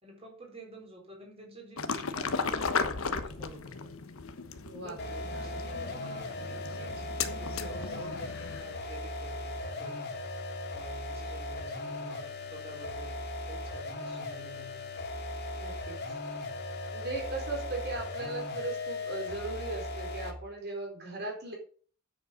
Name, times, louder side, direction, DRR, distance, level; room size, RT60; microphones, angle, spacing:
voice 1, 0.0-3.9 4.8-7.0 7.3-10.2 10.7-13.2 13.4-14.8, right 2 dB, 25° right, 1 dB, 4.3 m, -50 dB
sound 1, 1.8-8.8, left 4 dB, 70° left, 1.2 m, -36 dB
voice 2, 4.6-5.0 5.3-5.6 15.6-16.0 16.9-21.5, right 3 dB, 45° right, 1 dB, 4.3 m, -38 dB
sound 2, 5.0-20.5, left 2 dB, 50° left, 2.3 m, -38 dB
9.4 x 7.9 x 5.2 m, 0.42 s
head